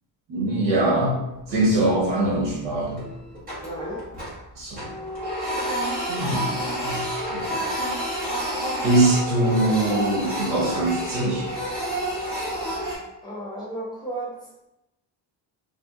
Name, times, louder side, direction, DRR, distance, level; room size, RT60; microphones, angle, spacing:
voice 1, 0.3-1.2 1.5-3.1 4.5-4.9 6.1-6.6 6.8-7.4 8.8-11.5, right 1 dB, 85° right, -3 dB, 1.2 m, -23 dB
Printer, 1.4-2.0 2.3-2.5 2.9-4.5 4.7-13.0, equal, 20° right, 1.1 m, -29 dB
voice 2, 3.6-4.0 13.2-14.4, right 1 dB, 10° left, -7 dB, 0.6 m, -33 dB
3.4 x 2.4 x 2.5 m, 0.90 s
cardioid pair, 165°, 43 cm